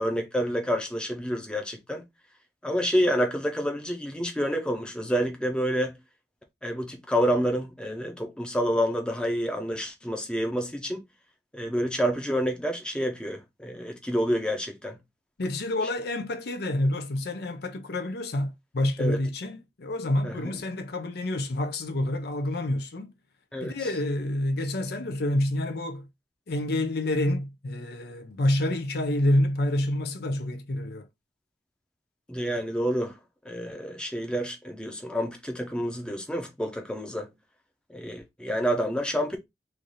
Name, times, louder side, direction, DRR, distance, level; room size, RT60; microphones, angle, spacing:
voice 1, 0.0-2.0 2.6-5.9 6.6-11.0 11.5-15.0 19.0-19.2 20.2-20.3 23.5-23.7 32.3-33.2 33.4-37.3 37.9-39.4, equal, 5° left, 0.7 m, -28 dB
voice 2, 15.4-23.1 23.6-26.1 26.5-31.1, left 1 dB, 60° left, 0.6 m, -28 dB
3.2 x 2.6 x 3.9 m
head